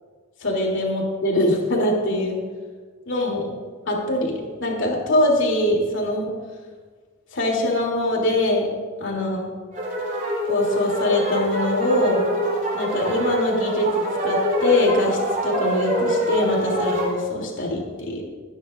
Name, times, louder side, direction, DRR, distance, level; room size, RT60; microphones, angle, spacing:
voice 1, 0.4-2.4 3.1-3.5 3.9-6.3 7.3-8.7 9.0-9.5 10.5-12.2 12.7-18.2, left 1 dB, 60° left, -1 dB, 3.1 m, -23 dB
sound 1, 9.7-17.1, right 1 dB, 40° right, 3.6 m, -25 dB
23.0 x 10.5 x 2.6 m, 1.5 s
head